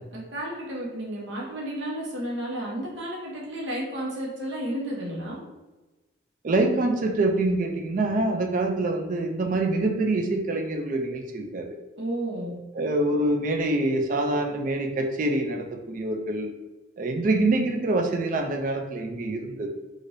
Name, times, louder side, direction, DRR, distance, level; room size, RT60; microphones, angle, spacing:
voice 1, 0.0-5.4 12.0-12.6, right 1 dB, 70° right, -4 dB, 1.0 m, -32 dB
voice 2, 6.4-11.7 12.7-16.5 17.0-19.7, right 2 dB, 45° right, 4 dB, 0.4 m, -25 dB
3.3 x 2.5 x 2.6 m, 1.1 s
head